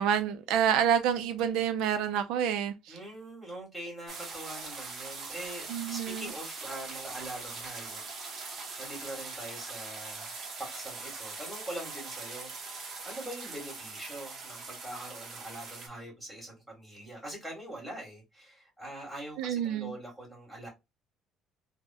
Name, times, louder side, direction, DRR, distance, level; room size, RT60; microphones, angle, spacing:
voice 1, 0.0-3.0 5.7-6.3 19.4-19.9, right 8 dB, 75° right, 0.4 m, -28 dB
voice 2, 2.9-8.5 8.8-10.3 10.6-20.7, right 1 dB, ahead, 1.9 m, -43 dB
sound 1, 4.1-15.9, right 4 dB, 35° right, 0.9 m, -42 dB
3.4 x 2.1 x 2.5 m
cardioid pair, 135°, 0 cm